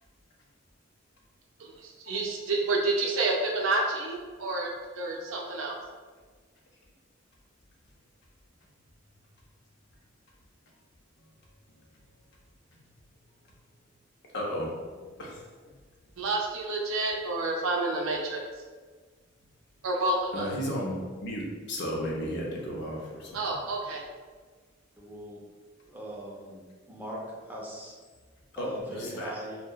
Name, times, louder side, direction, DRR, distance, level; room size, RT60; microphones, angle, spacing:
voice 1, 1.6-4.7 4.9-5.8 16.2-18.4 19.8-20.5 23.3-24.0, right 2 dB, 75° right, 0 dB, 0.4 m, -29 dB
voice 2, 14.3-15.4 20.3-21.0 21.2-23.6 28.6-29.3, equal, 60° left, -2 dB, 0.5 m, -34 dB
voice 3, 25.0-25.4 25.9-27.9 28.5-29.6, right 1 dB, 10° right, -3 dB, 0.4 m, -40 dB
2.7 x 2.1 x 2.2 m, 1.4 s
head